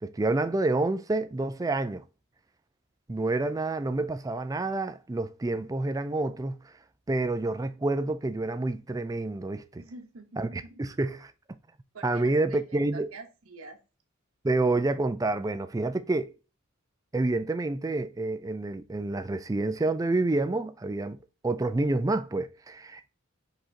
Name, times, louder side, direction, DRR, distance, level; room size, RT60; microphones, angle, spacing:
voice 1, 0.0-2.0 3.1-6.7 7.1-9.8 10.4-11.3 12.0-13.1 14.4-16.3 17.1-21.2 21.4-23.1, right 2 dB, 15° right, 0.4 m, -28 dB
voice 2, 9.8-10.8 11.9-13.8, right 3 dB, 85° right, 1.0 m, -46 dB
5.0 x 3.8 x 2.7 m
head